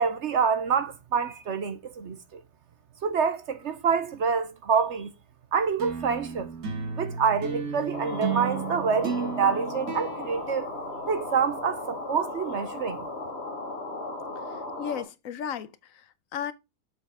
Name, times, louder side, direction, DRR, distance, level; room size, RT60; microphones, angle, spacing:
voice 1, 0.0-2.4 3.0-5.1 5.5-6.5 7.0-10.7 11.1-13.1, right 6 dB, 55° right, 1.0 m, -27 dB
sound 1, 5.8-11.4, right 5 dB, 70° right, 2.4 m, -34 dB
sound 2, 7.9-15.0, left 2 dB, 45° left, 1.8 m, -36 dB
voice 2, 14.5-16.5, left 8 dB, 70° left, 1.1 m, -35 dB
7.4 x 5.4 x 3.5 m
omnidirectional pair, 1.5 m